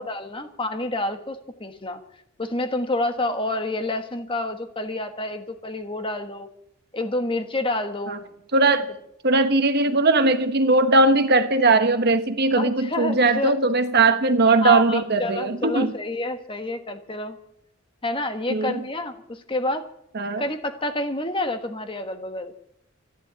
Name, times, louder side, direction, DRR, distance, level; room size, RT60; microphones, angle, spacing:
voice 1, 0.0-2.0 2.4-6.5 6.9-8.2 12.6-13.5 14.6-17.4 18.0-19.9 20.4-22.5, left 2 dB, 25° left, 8 dB, 1.4 m, -28 dB
voice 2, 8.5-8.9 9.2-15.9 18.5-18.9 20.1-20.4, right 3 dB, 50° right, 9 dB, 1.2 m, -19 dB
14.0 x 11.5 x 8.7 m, 0.75 s
head